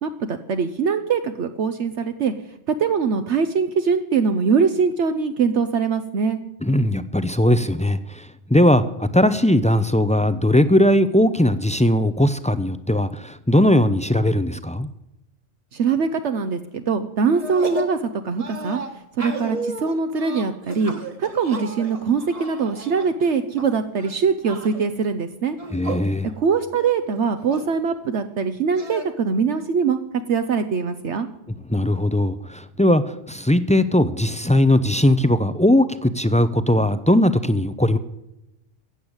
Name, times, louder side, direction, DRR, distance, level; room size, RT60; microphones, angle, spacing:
voice 1, 0.0-2.3 2.8-6.4 15.7-18.8 19.2-20.9 21.2-25.6 26.4-30.0 30.3-31.3, right 5 dB, 65° right, 8 dB, 1.1 m, -22 dB
voice 2, 6.6-14.9 25.7-26.3 31.7-38.0, left 1 dB, 10° left, 12 dB, 0.3 m, -19 dB
sound 1, 17.3-18.0 18.4-23.6 24.0-24.9 25.5-26.1 26.5-26.6 26.8-27.7 28.8-29.0, right 2 dB, 30° right, 1.4 m, -33 dB
15.0 x 8.1 x 8.8 m, 0.88 s
omnidirectional pair, 1.3 m